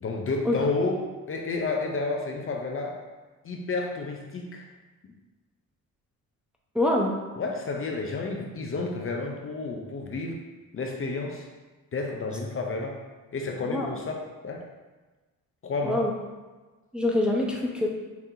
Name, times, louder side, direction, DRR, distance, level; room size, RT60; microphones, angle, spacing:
voice 1, 0.0-3.0 3.4-4.6 7.4-10.4 10.7-11.5 11.9-13.0 13.3-14.6 15.6-16.1, left 3 dB, 40° left, 1 dB, 0.6 m, -31 dB
voice 2, 6.7-7.1 13.7-13.9 15.8-16.1 16.9-17.9, left 1 dB, 5° right, -2 dB, 0.7 m, -24 dB
6.0 x 2.8 x 2.8 m, 1.2 s
cardioid pair, 80°, 34 cm